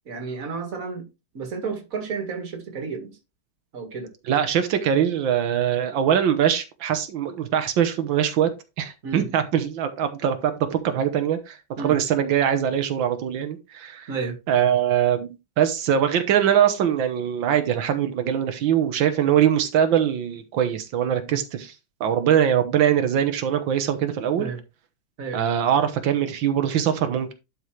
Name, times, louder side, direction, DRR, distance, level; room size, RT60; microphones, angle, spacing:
voice 1, 0.1-1.1 1.3-3.2 3.7-4.1 9.0-9.3 11.8-12.0 14.1-14.4 21.3-21.4 24.4-24.6 25.2-25.4, right 5 dB, 45° right, 2.2 m, -31 dB
voice 2, 4.3-8.5 8.8-14.1 14.5-21.7 22.0-24.5 25.3-27.3, right 9 dB, 90° right, 1.8 m, -22 dB
11.5 x 5.5 x 3.2 m
omnidirectional pair, 2.0 m